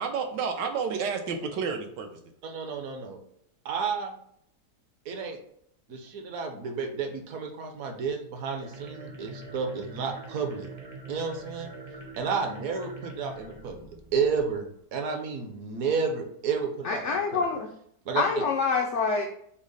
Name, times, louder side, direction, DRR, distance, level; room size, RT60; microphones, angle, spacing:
voice 1, 0.0-2.2, right 5 dB, 90° right, 4 dB, 1.3 m, -30 dB
voice 2, 2.4-3.2 3.6-4.1 5.1-5.4 5.9-10.7 11.1-11.7 12.2-17.4 18.0-18.2, right 5 dB, 65° right, 5 dB, 1.0 m, -31 dB
sound 1, 8.3-14.6, right 2 dB, 40° right, 0.5 m, -44 dB
voice 3, 16.8-17.7 18.1-19.2, left 5 dB, 90° left, 2 dB, 0.6 m, -26 dB
6.1 x 2.1 x 3.9 m, 0.67 s
omnidirectional pair, 1.8 m